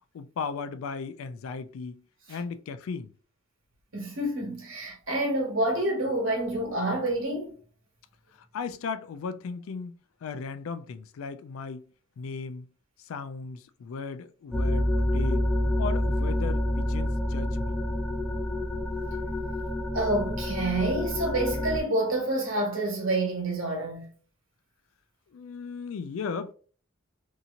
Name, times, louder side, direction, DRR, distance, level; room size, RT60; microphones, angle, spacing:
voice 1, 0.1-3.1 8.5-10.0 10.2-11.8 12.2-12.7 13.0-15.4 15.8-17.8 25.3-26.5, left 5 dB, 80° left, 0.3 m, -36 dB
voice 2, 3.9-7.6 19.9-24.0, right 1 dB, 70° right, 1.3 m, -28 dB
sound 1, 14.5-21.8, left 1 dB, 5° left, 0.3 m, -28 dB
2.8 x 2.7 x 2.5 m
head